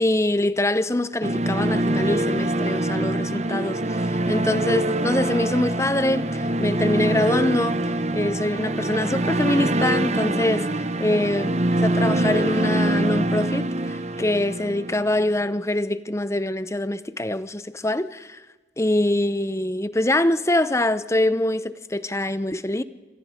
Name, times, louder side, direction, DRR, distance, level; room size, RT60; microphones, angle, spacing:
voice 1, 0.0-7.8 8.1-18.4 18.8-22.8, left 1 dB, 15° left, 0.8 m, -24 dB
sound 1, 1.2-15.3, right 1 dB, 40° right, 1.2 m, -24 dB
27.5 x 25.0 x 5.1 m
head